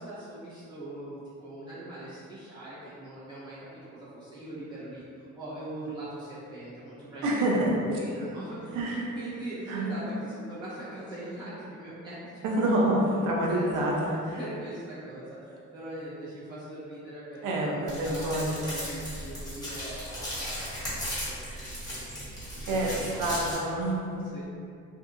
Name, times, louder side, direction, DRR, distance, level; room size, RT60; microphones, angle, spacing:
voice 1, 0.0-3.5 3.9-12.2 13.4-22.4 22.7-23.6 24.3-24.4, right 1 dB, 15° right, -12 dB, 1.0 m, -41 dB
voice 2, 7.2-7.8 8.7-9.0 9.7-10.0 12.4-14.4 17.4-18.6 21.4-21.7 22.7-24.3, right 1 dB, 85° right, -2 dB, 0.6 m, -27 dB
sound 1, 17.9-23.5, equal, 10° left, 1.3 m, -36 dB
2.7 x 2.6 x 2.4 m, 2.4 s
cardioid pair, 90°, 30 cm